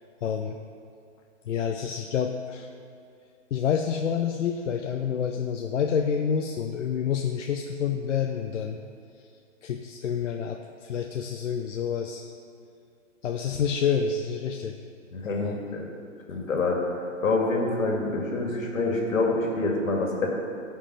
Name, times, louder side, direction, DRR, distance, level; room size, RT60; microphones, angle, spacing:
voice 1, 0.2-0.6 1.5-2.7 3.5-8.8 9.2-9.3 9.6-12.3 13.2-14.7 15.2-15.6, left 7 dB, 65° left, 4 dB, 0.7 m, -28 dB
voice 2, 15.1-15.9 16.3-20.3, left 3 dB, 80° left, 0 dB, 2.4 m, -26 dB
15.5 x 5.7 x 4.3 m, 2.4 s
hypercardioid pair, 150°, 39 cm